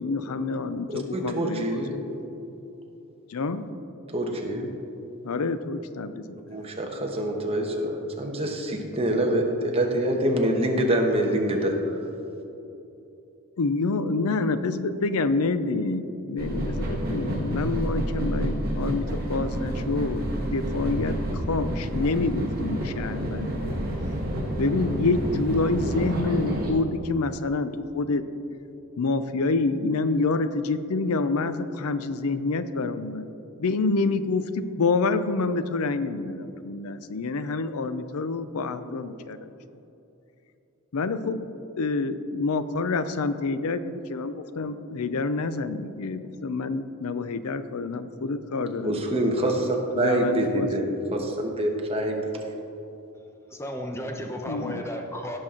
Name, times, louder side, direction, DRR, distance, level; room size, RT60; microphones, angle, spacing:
voice 1, 0.0-1.8 3.3-3.7 5.2-6.4 13.6-20.2 20.5-23.8 24.6-28.2 29.0-33.3 33.6-39.5 40.9-41.5 41.8-49.0 50.0-50.7 54.5-54.8, left 3 dB, 75° left, 12 dB, 0.5 m, -27 dB
voice 2, 1.1-2.0 4.1-4.7 6.5-11.9 48.8-52.2, right 1 dB, 25° right, 1 dB, 1.1 m, -25 dB
sound 1, 16.4-26.7, equal, 45° right, 1.9 m, -29 dB
voice 3, 53.5-55.4, left 1 dB, 10° left, 2 dB, 0.8 m, -33 dB
16.5 x 6.0 x 3.8 m, 2.9 s
head